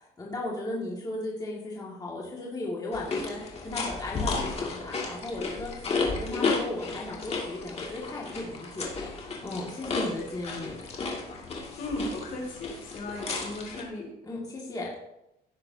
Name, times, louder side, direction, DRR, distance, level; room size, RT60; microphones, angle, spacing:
voice 1, 0.2-10.7 14.2-15.0, left 2 dB, 20° left, -4 dB, 2.2 m, -36 dB
sound 1, 2.9-13.8, left 4 dB, 40° left, 2.4 m, -33 dB
voice 2, 11.8-14.1, left 1 dB, 55° left, -1 dB, 4.3 m, -36 dB
16.5 x 6.8 x 2.9 m, 0.88 s
cardioid pair, 110°, 17 cm